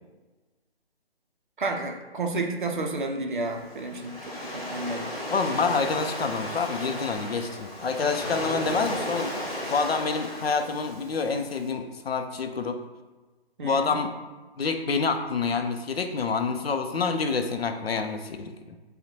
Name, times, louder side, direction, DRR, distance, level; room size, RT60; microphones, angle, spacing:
voice 1, 1.6-5.1 13.6-14.0, right 2 dB, 50° right, 3 dB, 0.4 m, -31 dB
Waves surf, 3.4-11.6, equal, 35° left, 1.1 m, -35 dB
voice 2, 5.3-9.3 9.7-12.8 13.6-14.1 14.6-18.5, left 4 dB, 70° left, 7 dB, 0.5 m, -27 dB
5.2 x 2.1 x 2.9 m, 1.2 s
figure-of-eight pair, 150°, 32 cm